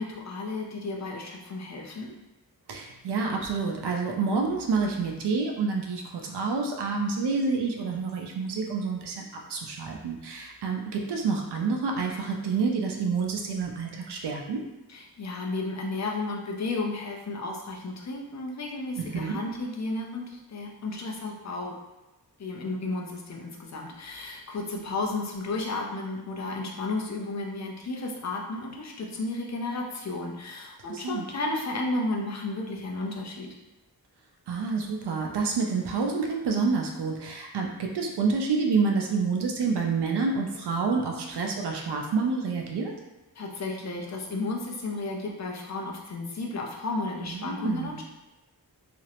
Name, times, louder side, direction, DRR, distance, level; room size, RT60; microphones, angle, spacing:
voice 1, 0.0-2.1 14.9-21.8 22.4-33.6 43.4-48.0, left 2 dB, 45° left, -1 dB, 0.4 m, -33 dB
voice 2, 2.7-9.2 9.5-14.6 19.0-19.3 30.9-31.2 34.5-42.9 47.2-48.0, right 4 dB, 90° right, 1 dB, 0.5 m, -28 dB
2.5 x 2.0 x 2.8 m, 1.1 s
wide cardioid pair, 120°, 39 cm